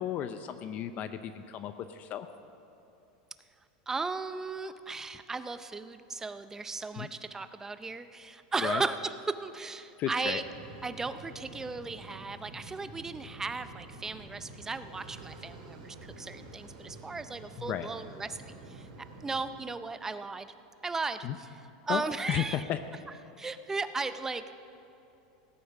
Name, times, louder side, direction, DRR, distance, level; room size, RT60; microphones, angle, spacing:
voice 1, 0.0-2.3 7.0-7.1 8.6-8.8 10.0-10.4 17.6-17.9 21.2-21.4 21.9-22.0 22.3-22.8, left 11 dB, 40° left, 10 dB, 0.5 m, -34 dB
voice 2, 3.9-10.4 10.8-18.4 18.7-18.9 19.2-20.5 20.8-21.5 21.9-22.7 23.4-24.5, right 3 dB, 10° right, 11 dB, 0.5 m, -36 dB
sound 1, 10.4-19.6, right 2 dB, 85° right, 3.6 m, -48 dB
17.0 x 9.2 x 6.5 m, 2.8 s
supercardioid pair, 140°, 4 cm